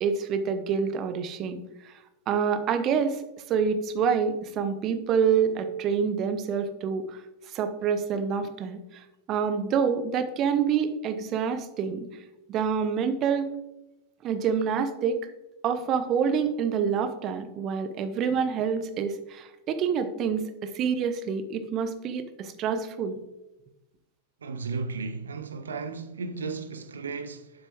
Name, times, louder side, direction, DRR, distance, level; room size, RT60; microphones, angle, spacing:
voice 1, 0.0-1.9 2.3-3.2 3.5-7.2 7.5-12.1 12.5-13.5 14.2-15.3 15.6-23.2, right 6 dB, 35° right, 0.8 m, -27 dB
voice 2, 24.4-27.5, right 4 dB, 70° right, 0.7 m, -34 dB
9.6 x 7.6 x 3.0 m
figure-of-eight pair, 90°, 0 cm